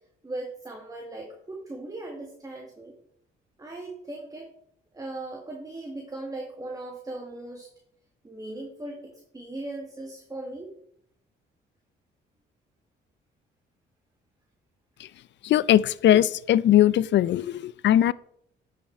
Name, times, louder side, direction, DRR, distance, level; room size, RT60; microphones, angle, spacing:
voice 1, 0.2-3.0 3.6-4.5 4.9-7.7 8.2-10.7, right 2 dB, 20° right, 1.7 m, -38 dB
voice 2, 15.4-18.1, left 12 dB, 65° left, 0.4 m, -20 dB
9.9 x 6.0 x 4.2 m
cardioid pair, 90°, 20 cm